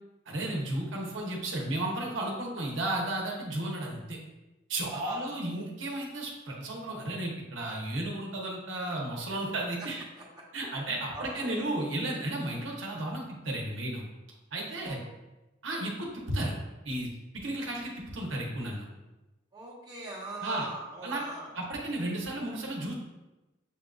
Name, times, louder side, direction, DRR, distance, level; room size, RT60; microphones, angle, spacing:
voice 1, 0.3-4.2 4.7-10.0 10.5-14.1 14.5-15.0 15.6-16.6 16.8-17.1 17.3-18.9 20.4-20.7 21.0-21.2 21.5-23.0, right 1 dB, 80° right, -2 dB, 0.8 m, -33 dB
voice 2, 4.9-5.3 9.8-9.9 10.2-10.3 11.1-11.6 14.7-15.1 19.5-21.5, right 2 dB, 20° right, -5 dB, 0.9 m, -42 dB
6.8 x 2.4 x 2.3 m, 1.0 s
head